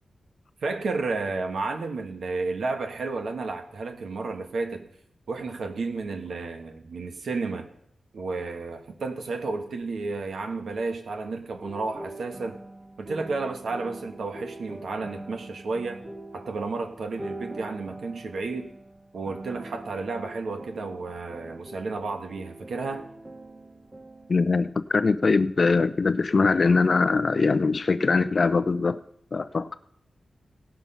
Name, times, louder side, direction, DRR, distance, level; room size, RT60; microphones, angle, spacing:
voice 1, 0.6-4.8 5.3-7.7 8.1-12.6 13.0-16.0 16.3-18.7 19.1-23.0, right 3 dB, 85° right, 5 dB, 1.3 m, -32 dB
sound 1, 11.6-24.6, right 1 dB, 30° right, 1.7 m, -43 dB
voice 2, 24.3-29.0 29.3-29.8, left 4 dB, 50° left, 14 dB, 0.5 m, -22 dB
17.0 x 6.0 x 5.6 m, 0.70 s
wide cardioid pair, 105°, 0 cm